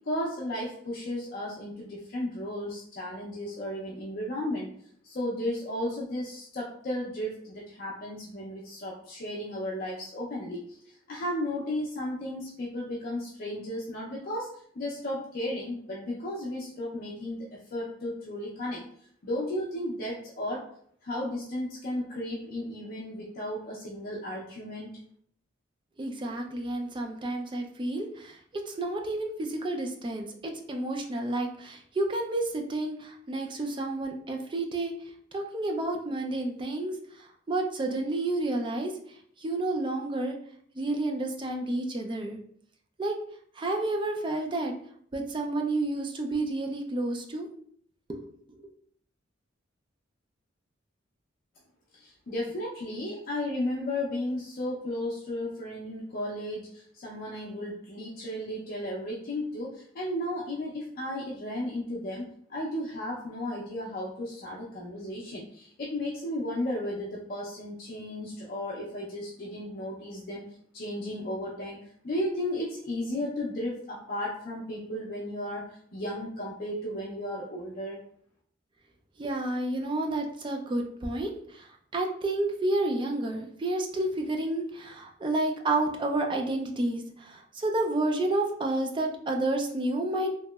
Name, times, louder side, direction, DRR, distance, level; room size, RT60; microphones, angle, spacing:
voice 1, 0.1-4.7 5.0-10.6 11.1-17.5 17.7-18.8 19.2-20.6 21.0-24.9 51.9-70.4 70.7-71.8 72.0-75.6 75.9-78.0, left 1 dB, 50° left, -5 dB, 0.5 m, -34 dB
voice 2, 26.0-34.9 35.3-36.9 37.5-38.9 39.4-40.4 40.8-42.4 43.0-43.1 43.6-44.7 45.1-47.5 48.1-48.2 79.2-81.7 81.9-90.4, right 2 dB, 25° right, 3 dB, 0.3 m, -30 dB
2.8 x 2.8 x 2.2 m, 0.62 s
head